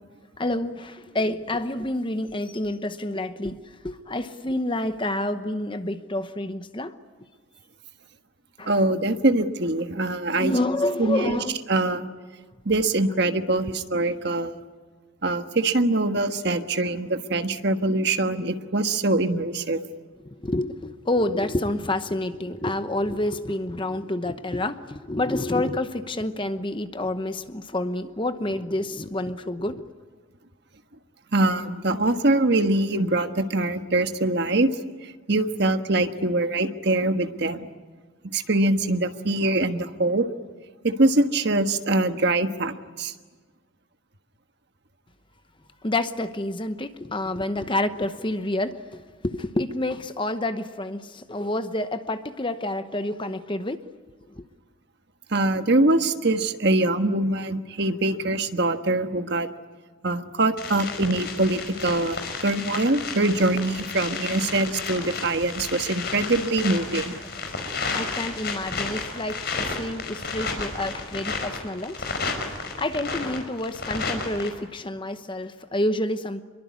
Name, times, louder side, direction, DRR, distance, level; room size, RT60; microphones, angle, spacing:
voice 1, 0.4-7.0 8.6-8.8 10.3-11.6 20.2-29.9 45.8-53.8 54.3-54.4 67.5-67.6 67.9-72.0 72.4-76.4, left 1 dB, 25° left, 0.9 m, -28 dB
voice 2, 8.7-10.5 11.0-11.4 11.7-12.1 12.6-14.6 15.2-19.8 31.3-34.7 35.3-37.7 38.3-40.2 40.8-43.1 55.3-59.5 60.0-67.1, right 2 dB, 55° right, 1.4 m, -23 dB
sound 1, 60.6-74.5, left 4 dB, 50° left, 4.9 m, -32 dB
26.5 x 23.0 x 9.6 m
head